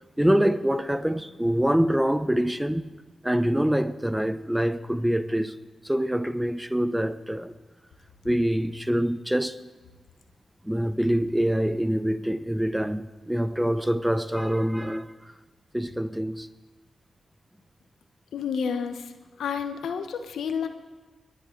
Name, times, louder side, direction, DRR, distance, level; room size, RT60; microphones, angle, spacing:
voice 1, 0.2-2.8 3.2-5.6 5.8-7.5 8.2-9.6 10.6-15.1 15.7-16.5, equal, 5° right, 0.7 m, -25 dB
voice 2, 18.3-19.1 19.4-20.7, left 6 dB, 80° left, 1.0 m, -30 dB
21.0 x 11.0 x 3.9 m
cardioid pair, 50°, 0 cm